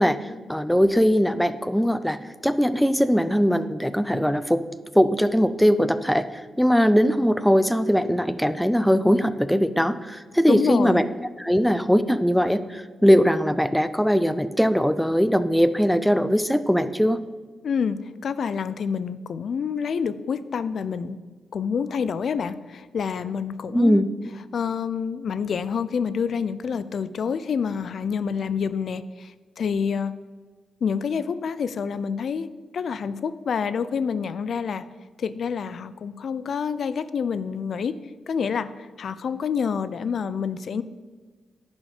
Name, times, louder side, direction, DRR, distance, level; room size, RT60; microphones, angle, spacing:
voice 1, 0.0-2.2 2.4-4.6 4.9-11.1 11.4-17.2 23.7-24.1, equal, ahead, 13 dB, 0.5 m, -20 dB
voice 2, 10.5-11.0 17.6-21.2 21.5-24.0 24.5-30.1 30.8-32.5 32.7-34.8 35.2-38.0 38.3-40.8, left 6 dB, 60° left, 15 dB, 0.4 m, -27 dB
10.5 x 6.3 x 4.9 m, 1.5 s
cardioid pair, 100°, 0 cm